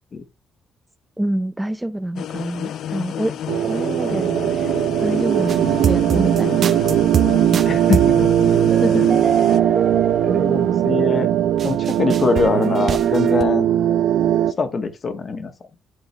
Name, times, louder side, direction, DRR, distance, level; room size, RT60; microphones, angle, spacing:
voice 1, 1.2-3.3 3.6-4.7 5.0-7.6 8.8-9.2, right 1 dB, 10° right, 0.5 m, -26 dB
sound 1, 2.2-9.6, left 10 dB, 75° left, 0.4 m, -31 dB
sound 2, 3.5-14.5, right 11 dB, 90° right, 0.6 m, -19 dB
sound 3, 5.5-13.4, right 7 dB, 55° right, 0.8 m, -24 dB
voice 2, 7.6-8.1 10.0-11.3 11.6-13.7 14.6-15.5, left 4 dB, 45° left, 1.5 m, -23 dB
11.5 x 3.9 x 3.3 m
cardioid pair, 90°, 0 cm